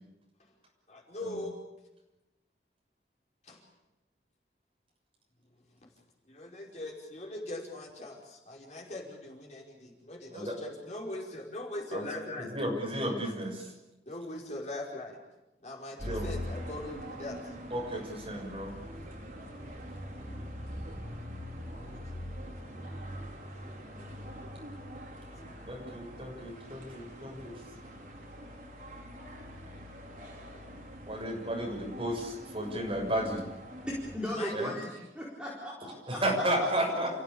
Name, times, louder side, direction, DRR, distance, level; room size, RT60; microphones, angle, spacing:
voice 1, 0.9-1.5 3.4-3.6 6.3-12.5 14.0-15.2 15.6-17.5 20.3-20.5 21.7-23.0 23.6-24.5 25.4-25.5 26.7-26.8 34.3-34.9, left 1 dB, 40° left, -1 dB, 5.1 m, -42 dB
voice 2, 12.4-13.7 16.0-16.3 17.7-18.7 25.7-27.5 31.1-33.4 34.5-34.7 36.1-37.1, right 1 dB, 30° right, -1 dB, 6.8 m, -33 dB
sound 1, 16.0-34.2, equal, 50° right, 4.7 m, -43 dB
voice 3, 33.9-36.4, equal, 5° right, -6 dB, 4.4 m, -37 dB
29.0 x 16.0 x 8.8 m, 1.0 s
head